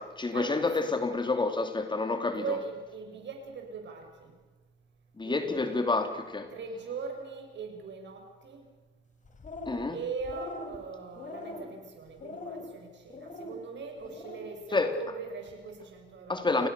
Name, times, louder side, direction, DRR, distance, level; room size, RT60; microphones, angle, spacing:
voice 1, 0.0-2.6 5.2-6.5 9.7-10.0 14.7-14.9 16.3-16.7, left 3 dB, 25° left, 2.8 m, -29 dB
voice 2, 2.2-4.3 5.2-5.8 6.5-8.7 9.9-16.5, right 5 dB, 65° right, 6.6 m, -40 dB
sound 1, 9.2-9.9 10.2-10.8 11.1-11.7 12.2-12.7 13.1-13.5 14.0-14.4, left 2 dB, 40° left, 4.3 m, -42 dB
29.0 x 19.5 x 6.8 m
cardioid pair, 90°, 20 cm